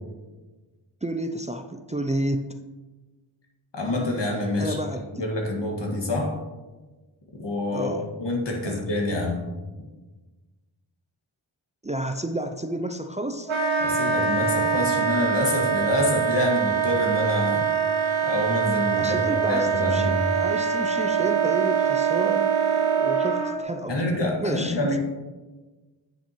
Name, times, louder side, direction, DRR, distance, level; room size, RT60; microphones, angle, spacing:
voice 1, 1.0-2.6 4.6-5.3 7.7-8.1 8.6-8.8 11.8-13.5 19.0-22.5 23.0-23.9 24.4-25.0, right 1 dB, 15° right, 6 dB, 0.4 m, -31 dB
voice 2, 3.7-4.8 5.1-6.4 7.4-9.5 13.8-17.6 18.2-20.2 23.9-25.0, left 2 dB, 60° left, 0 dB, 1.9 m, -26 dB
Wind instrument woodwind instrument, 13.5-23.6, right 7 dB, 70° right, 1.3 m, -24 dB
9.2 x 7.1 x 3.1 m, 1.2 s
cardioid pair, 50°, 48 cm